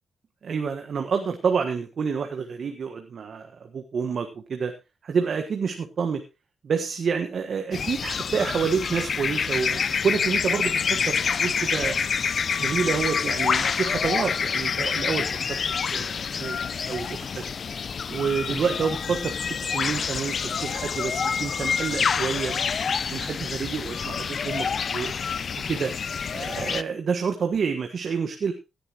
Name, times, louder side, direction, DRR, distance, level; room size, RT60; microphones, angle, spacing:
voice 1, 0.4-4.7 5.0-6.2 6.6-12.0 12.6-15.6 15.9-16.6 16.9-17.4 18.1-19.3 19.7-22.7 23.1-25.1 25.7-25.9 26.3-28.5, right 6 dB, 65° right, 5 dB, 1.5 m, -28 dB
sound 1, 7.7-26.8, left 6 dB, 60° left, 0.6 m, -27 dB
17.5 x 10.0 x 3.0 m, 0.27 s
supercardioid pair, 45°, 0 cm